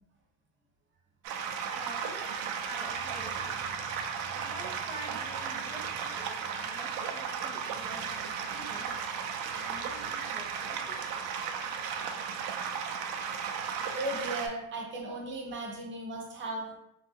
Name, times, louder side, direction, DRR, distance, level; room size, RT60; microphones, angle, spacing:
sound 1, 1.2-14.5, right 7 dB, 65° right, 0.5 m, -35 dB
voice 1, 1.8-3.9 4.3-9.0 9.5-11.2, right 1 dB, 15° left, -6 dB, 0.4 m, -47 dB
voice 2, 13.9-16.7, right 2 dB, 30° right, -2 dB, 0.7 m, -36 dB
2.9 x 2.3 x 2.8 m, 0.81 s
cardioid pair, 135°, 37 cm